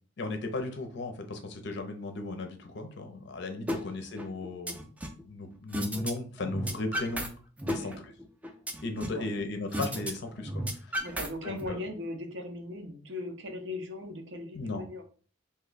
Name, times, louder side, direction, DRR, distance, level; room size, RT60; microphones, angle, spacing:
voice 1, 0.2-4.8 5.1-7.3 7.7-7.9 8.8-10.5 10.8-11.1 11.4-11.8 14.5-14.9, left 2 dB, 60° left, 6 dB, 0.5 m, -36 dB
sound 1, 3.7-3.8 4.2-5.2 5.7-6.1 6.4-7.3 7.6-9.2 9.7-10.1 10.4-11.7, equal, 10° right, 0.3 m, -33 dB
voice 2, 7.7-8.0 8.9-9.3 10.9-15.0, left 1 dB, 65° right, 4 dB, 0.6 m, -39 dB
2.7 x 2.2 x 3.9 m, 0.42 s
head